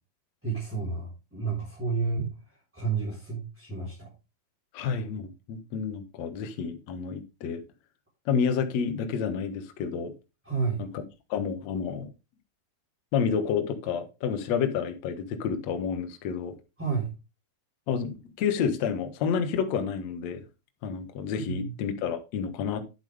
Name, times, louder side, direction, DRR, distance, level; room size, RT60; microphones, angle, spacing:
voice 1, 0.4-2.3 2.7-4.1 10.4-10.8 16.8-17.1 21.4-21.8, right 5 dB, 5° right, 3.1 m, -30 dB
voice 2, 4.7-7.6 8.3-10.1 10.8-11.0 11.3-12.1 13.1-16.6 17.9-20.4 20.8-22.8, left 6 dB, 60° left, 2.1 m, -29 dB
10.5 x 8.1 x 3.4 m
omnidirectional pair, 4.4 m